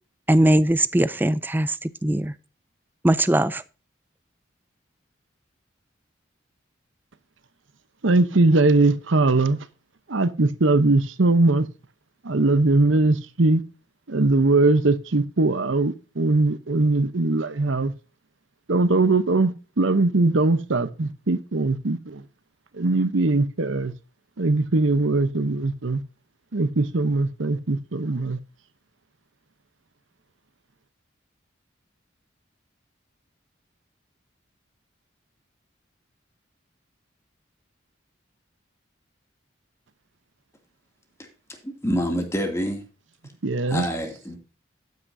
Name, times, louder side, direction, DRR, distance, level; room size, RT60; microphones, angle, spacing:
voice 1, 0.3-2.3 3.0-3.6, right 1 dB, 10° right, 0.4 m, -20 dB
voice 2, 8.0-9.6 10.1-11.7 12.2-13.6 14.1-17.9 18.7-22.2 22.7-23.9 24.4-26.0 26.5-28.4 43.4-43.9, right 2 dB, 80° right, 0.9 m, -21 dB
voice 3, 41.6-42.8 43.7-44.4, equal, 15° left, 2.5 m, -26 dB
12.5 x 9.6 x 2.7 m
head